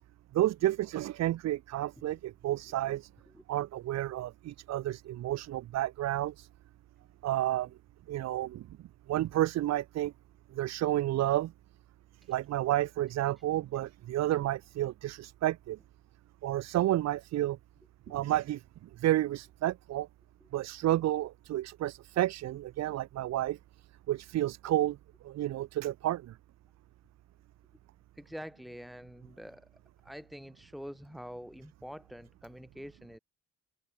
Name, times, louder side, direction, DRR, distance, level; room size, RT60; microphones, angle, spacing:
voice 1, 0.3-3.1 3.5-6.5 7.2-7.7 8.1-8.7 9.1-10.1 10.5-11.5 12.3-15.8 16.4-17.6 18.1-18.6 19.0-20.1 20.5-23.6 24.1-25.0 25.2-26.3, right 14 dB, 60° right, 0.6 m, -30 dB
voice 2, 28.2-29.7 30.0-33.2, equal, ahead, 3.7 m, -46 dB
cardioid pair, 90°, 30 cm